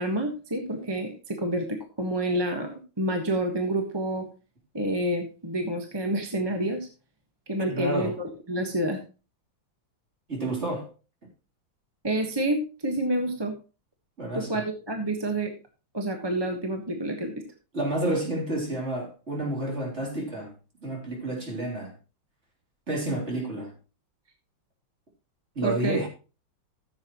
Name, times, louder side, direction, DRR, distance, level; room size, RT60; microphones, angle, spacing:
voice 1, 0.0-4.3 4.7-6.9 7.5-9.0 12.0-13.5 14.3-15.5 15.9-17.3 25.6-26.0, right 1 dB, 15° right, 1.2 m, -28 dB
voice 2, 7.6-8.2 10.3-10.9 14.2-14.6 17.7-20.5 20.8-21.9 22.9-23.7 25.6-26.1, right 1 dB, 35° right, 3.8 m, -30 dB
15.0 x 7.9 x 3.0 m
omnidirectional pair, 2.1 m